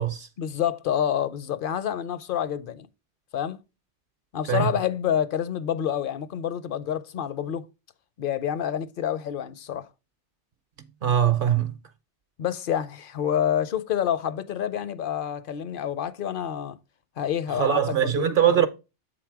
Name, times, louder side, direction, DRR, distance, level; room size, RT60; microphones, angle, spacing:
voice 1, 0.4-2.9 3.3-3.6 4.3-7.7 8.2-9.9 12.4-16.8 17.2-18.7, left 9 dB, 55° left, 0.7 m, -28 dB
voice 2, 11.0-11.7 17.6-18.7, right 9 dB, 55° right, 0.8 m, -22 dB
7.8 x 4.0 x 4.6 m
omnidirectional pair, 1.2 m